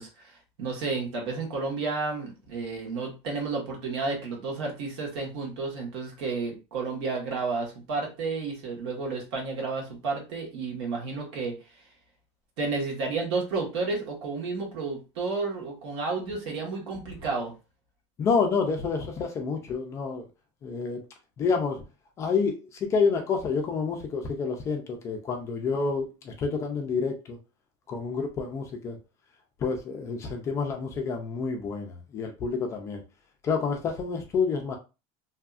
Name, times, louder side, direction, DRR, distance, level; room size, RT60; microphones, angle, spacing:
voice 1, 0.0-11.5 12.6-17.5, right 4 dB, 80° right, 1.3 m, -31 dB
voice 2, 18.2-20.3 20.6-21.0 21.4-21.8 22.2-27.4 27.9-29.0 29.6-33.0 33.4-34.8, left 5 dB, 20° left, 0.3 m, -28 dB
2.7 x 2.4 x 2.3 m
cardioid pair, 180°, 14 cm